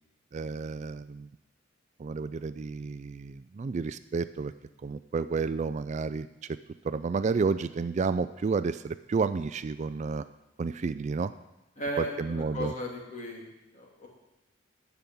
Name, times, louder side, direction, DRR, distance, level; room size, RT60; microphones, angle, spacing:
voice 1, 0.3-1.3 2.0-4.5 4.8-6.6 6.8-10.2 10.6-11.3 12.0-12.7, right 4 dB, 35° right, 13 dB, 0.3 m, -31 dB
voice 2, 11.8-13.5 13.7-14.1, right 1 dB, 40° left, -1 dB, 2.7 m, -35 dB
10.5 x 7.1 x 9.3 m, 0.98 s
head